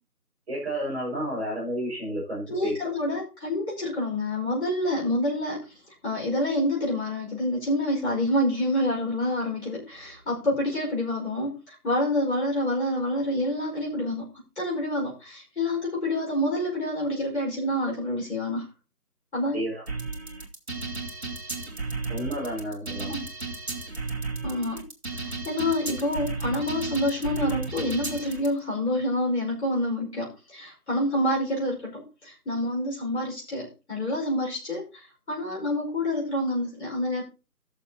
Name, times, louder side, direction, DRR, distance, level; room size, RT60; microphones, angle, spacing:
voice 1, 0.5-2.9 19.5-19.8 22.1-23.1, right 1 dB, 5° right, -13 dB, 3.9 m, -31 dB
voice 2, 2.5-5.7 6.0-14.3 14.6-18.7 19.3-19.6 23.1-23.2 24.4-24.9 25.2-37.2, left 1 dB, 45° left, -3 dB, 5.3 m, -27 dB
sound 1, 19.9-28.5, right 3 dB, 45° right, 2.2 m, -34 dB
17.5 x 6.8 x 2.9 m, 0.31 s
figure-of-eight pair, 175°, 46 cm